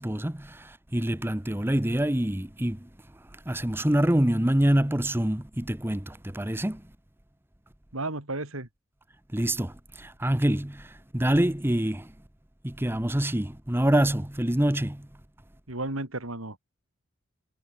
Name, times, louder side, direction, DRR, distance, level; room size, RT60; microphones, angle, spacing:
voice 1, 0.0-2.9 3.3-6.8 9.3-12.1 12.6-15.1, right 1 dB, 10° right, 0.9 m, -26 dB
voice 2, 7.9-8.7 15.7-16.6, right 2 dB, 80° right, 4.2 m, -33 dB
head